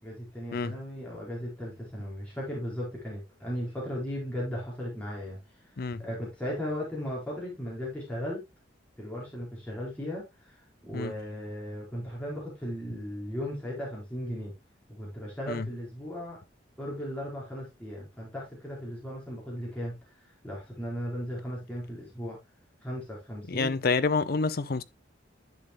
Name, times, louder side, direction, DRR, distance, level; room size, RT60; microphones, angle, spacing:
voice 1, 0.0-5.4 6.0-8.4 9.0-10.6 10.8-14.5 14.9-16.4 16.8-20.0 20.4-22.4 22.8-23.8, equal, 10° left, 4.2 m, -36 dB
voice 2, 23.5-24.8, left 4 dB, 55° left, 0.6 m, -28 dB
10.5 x 6.7 x 2.2 m
head